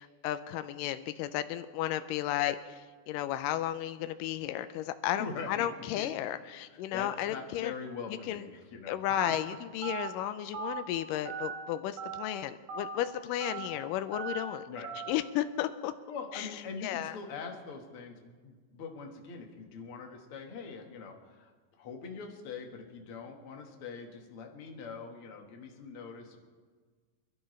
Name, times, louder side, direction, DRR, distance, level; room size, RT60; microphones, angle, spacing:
voice 1, 0.0-7.7 8.3-8.4 8.9-14.7 15.1-15.9 16.3-16.5 16.8-17.2, left 12 dB, 90° left, 11 dB, 2.2 m, -33 dB
voice 2, 5.1-5.7 5.9-6.1 6.7-9.0 14.7-14.9 16.1-26.4, left 5 dB, 50° left, 2 dB, 2.2 m, -43 dB
Telephone, 9.1-9.4 9.8-10.1 10.5-10.8 11.3-11.5 12.0-12.2 12.7-13.0 13.4-13.7 14.1-14.4 14.8-15.1, right 6 dB, 75° right, 3.4 m, -38 dB
27.0 x 12.5 x 3.2 m, 1.4 s
omnidirectional pair, 3.8 m